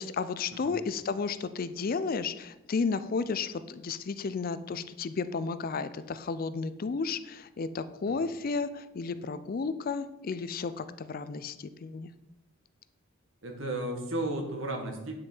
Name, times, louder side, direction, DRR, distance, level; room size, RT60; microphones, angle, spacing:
voice 1, 0.0-12.1, left 4 dB, 45° left, 13 dB, 0.4 m, -33 dB
voice 2, 13.4-15.2, right 1 dB, 65° right, 3 dB, 1.6 m, -34 dB
9.2 x 6.3 x 4.4 m, 0.94 s
head